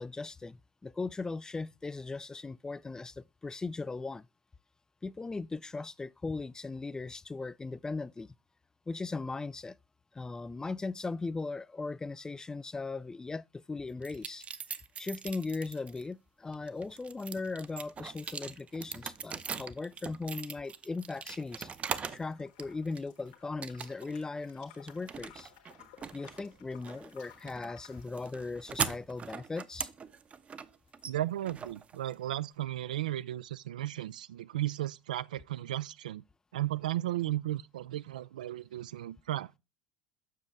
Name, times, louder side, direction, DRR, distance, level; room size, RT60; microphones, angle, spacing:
voice 1, 0.0-4.3 5.0-8.3 8.9-9.8 10.1-14.4 15.0-21.7 22.1-25.5 26.1-29.9, left 3 dB, 15° left, 0.4 m, -38 dB
sound 1, 14.0-16.0 16.5-22.3 22.6-23.2 23.6-24.2 24.5-32.4, right 6 dB, 30° right, 0.7 m, -41 dB
sound 2, 22.0-28.0, left 11 dB, 65° left, 1.4 m, -57 dB
voice 2, 31.1-36.2 36.5-39.6, right 14 dB, 75° right, 0.4 m, -35 dB
7.4 x 6.2 x 3.3 m
figure-of-eight pair, 70°, 4 cm